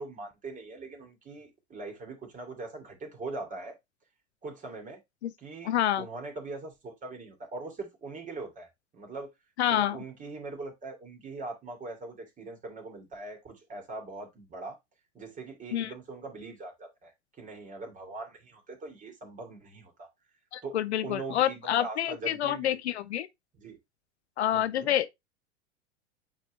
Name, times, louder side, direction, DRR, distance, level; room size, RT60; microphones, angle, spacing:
voice 1, 0.0-3.8 4.4-5.0 5.4-8.7 8.9-9.3 9.7-14.8 15.1-17.1 17.4-20.1 20.6-20.8 21.0-23.1 23.6-23.8 24.5-24.9, right 3 dB, 20° right, 2.8 m, -41 dB
voice 2, 5.6-6.1 9.6-10.0 15.7-15.9 20.5-23.3 24.4-25.1, left 11 dB, 65° left, 0.7 m, -28 dB
8.6 x 3.8 x 3.1 m
figure-of-eight pair, 90°, 36 cm